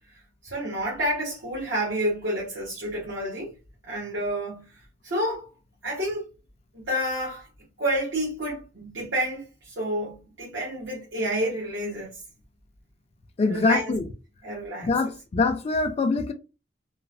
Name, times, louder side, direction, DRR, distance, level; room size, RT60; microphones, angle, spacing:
voice 1, 0.4-3.5 3.8-5.5 5.8-6.3 6.7-7.5 7.8-12.2 13.5-14.0 14.4-14.9, right 1 dB, 70° right, 0.9 m, -29 dB
voice 2, 13.4-14.1 14.8-16.3, left 3 dB, 30° left, 0.3 m, -24 dB
3.1 x 2.0 x 2.4 m
head